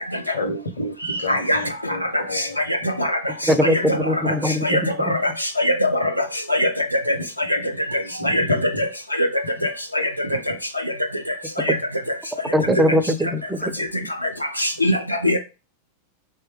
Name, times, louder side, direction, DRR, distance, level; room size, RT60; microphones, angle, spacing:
voice 1, 0.3-2.6 7.1-7.2 8.0-8.9 10.2-10.4, left 1 dB, 70° left, 0.8 m, -30 dB
voice 2, 3.5-5.2 12.5-13.7, equal, 10° right, 0.3 m, -21 dB
voice 3, 5.6-6.0 6.5-6.7 8.2-8.4 9.2-9.3 11.7-11.8 14.6-14.9 15.2-15.4, left 1 dB, 85° left, 0.3 m, -19 dB
3.1 x 2.1 x 3.0 m
figure-of-eight pair, 90°, 0 cm